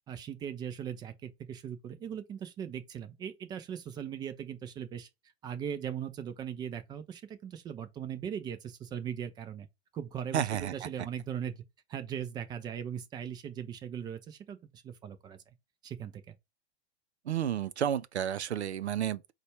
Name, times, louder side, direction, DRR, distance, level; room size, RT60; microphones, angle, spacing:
voice 1, 0.1-5.1 5.4-9.7 9.9-11.6 11.9-15.4 15.8-16.3, right 8 dB, 15° right, 0.3 m, -39 dB
voice 2, 10.3-10.7 17.3-19.3, right 9 dB, 80° right, 0.5 m, -31 dB
4.1 x 2.2 x 4.6 m
figure-of-eight pair, 105°, 32 cm